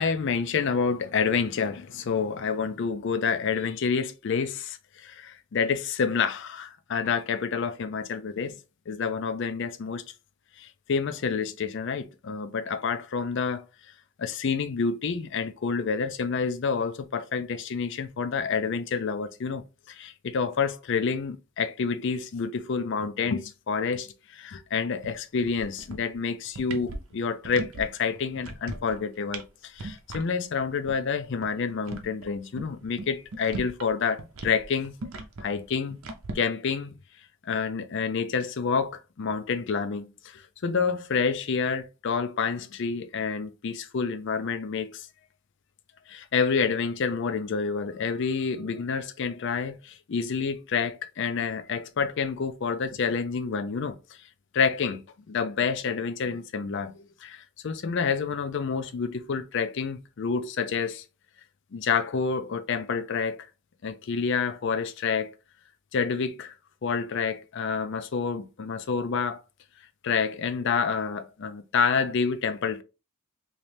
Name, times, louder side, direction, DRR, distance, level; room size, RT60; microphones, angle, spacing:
voice 1, 0.0-8.6 8.9-10.0 10.6-13.6 14.2-35.0 35.4-36.0 36.3-36.9 37.4-45.1 46.1-54.0 54.5-61.0 61.7-63.5 63.8-65.3 65.9-66.5 66.8-69.4 70.0-72.8, left 5 dB, 55° left, 0.4 m, -28 dB
sound 1, 25.0-25.2 25.4-26.2 26.5-27.8 28.2-29.0 29.3-29.5 29.7-30.2 30.6-30.7 30.9-31.0 31.3-33.9 34.2-36.3, right 2 dB, 70° right, 0.6 m, -38 dB
3.1 x 2.8 x 3.2 m
head